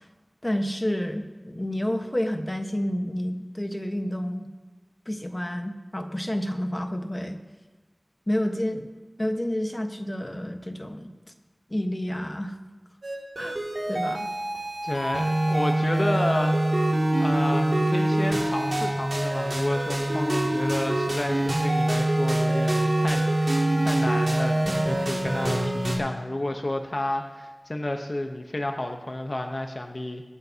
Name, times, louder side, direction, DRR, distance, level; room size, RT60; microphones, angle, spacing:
voice 1, 0.4-4.5 5.1-7.4 8.3-8.9 9.2-11.1 11.7-12.5 13.4-13.6 13.9-14.3, left 1 dB, 30° left, 5 dB, 1.3 m, -29 dB
sound 1, 13.0-26.0, right 1 dB, 85° right, 2.4 m, -25 dB
voice 2, 14.8-16.6 17.2-30.2, left 1 dB, 55° left, 4 dB, 0.9 m, -31 dB
24.0 x 9.1 x 2.9 m, 1.3 s
wide cardioid pair, 40°, 0 cm